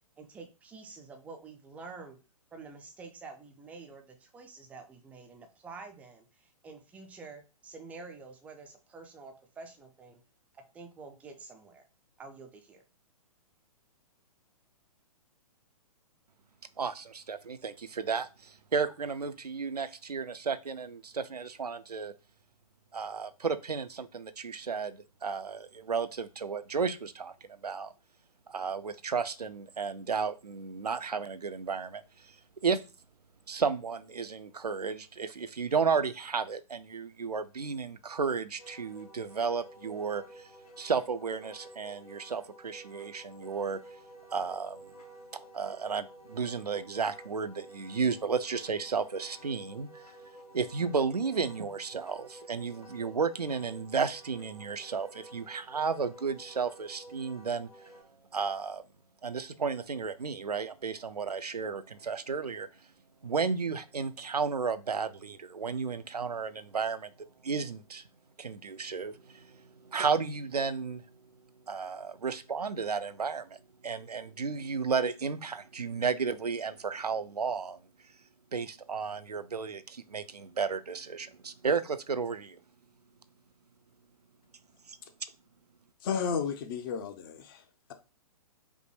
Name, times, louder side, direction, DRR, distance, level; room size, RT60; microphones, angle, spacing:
voice 1, 0.2-2.2 2.5-10.2 10.5-11.8 12.2-12.8, right 4 dB, 5° right, 0.3 m, -48 dB
voice 2, 16.8-22.1 22.9-27.9 28.5-32.4 32.6-32.8 33.5-40.5 40.8-43.8 44.3-44.8 45.5-50.0 50.5-57.7 58.3-58.8 59.2-62.7 63.2-67.1 67.4-68.0 68.4-71.1 71.7-73.6 73.8-77.8 78.5-82.6 84.9-85.0, right 5 dB, 90° right, 0.4 m, -33 dB
Wind instrument woodwind instrument, 38.6-58.0, right 1 dB, 70° left, 1.6 m, -52 dB
voice 3, 86.0-87.6, left 6 dB, 35° left, 0.6 m, -32 dB
5.2 x 2.1 x 3.1 m
figure-of-eight pair, 120°, 20 cm